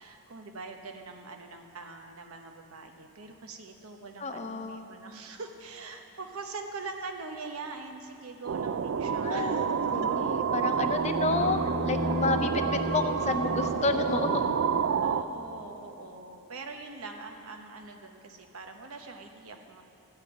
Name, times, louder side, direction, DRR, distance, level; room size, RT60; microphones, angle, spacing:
voice 1, 0.0-9.9 10.7-10.8 15.0-19.8, right 3 dB, 90° right, 4 dB, 1.0 m, -43 dB
voice 2, 4.2-4.9 9.2-11.6 11.8-14.4, left 3 dB, 30° left, 6 dB, 0.5 m, -30 dB
sound 1, 8.5-15.2, right 6 dB, 70° right, 0.4 m, -29 dB
sound 2, 10.7-15.0, equal, 25° right, 1.7 m, -35 dB
13.5 x 5.7 x 9.0 m, 2.7 s
head